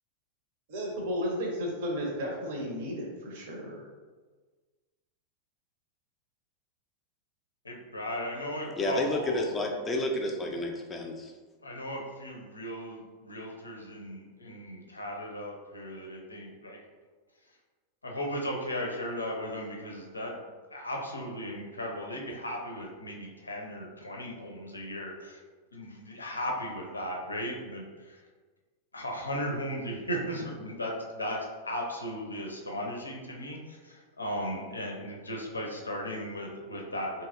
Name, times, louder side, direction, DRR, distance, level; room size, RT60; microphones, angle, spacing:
voice 1, 0.7-3.9, equal, 55° right, -1 dB, 0.6 m, -33 dB
voice 2, 7.6-9.5 11.6-16.8 18.0-25.4 25.7-28.2 28.9-31.4 31.6-37.2, equal, 80° left, 0 dB, 0.5 m, -36 dB
voice 3, 8.8-11.3, left 1 dB, 20° left, 2 dB, 0.4 m, -30 dB
2.8 x 2.6 x 2.4 m, 1.4 s
figure-of-eight pair, 90°, 0 cm